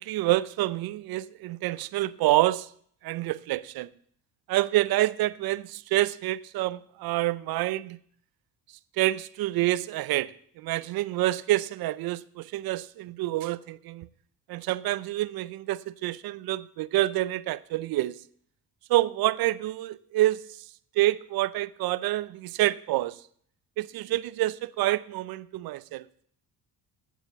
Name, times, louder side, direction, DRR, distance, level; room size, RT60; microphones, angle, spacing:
voice 1, 0.0-2.7 3.0-3.9 4.5-8.0 9.0-10.3 10.6-14.1 14.5-18.2 18.9-20.4 21.0-23.2 23.8-26.0, right 16 dB, 65° right, 0.6 m, -27 dB
9.0 x 7.1 x 8.0 m
cardioid pair, 120°, 39 cm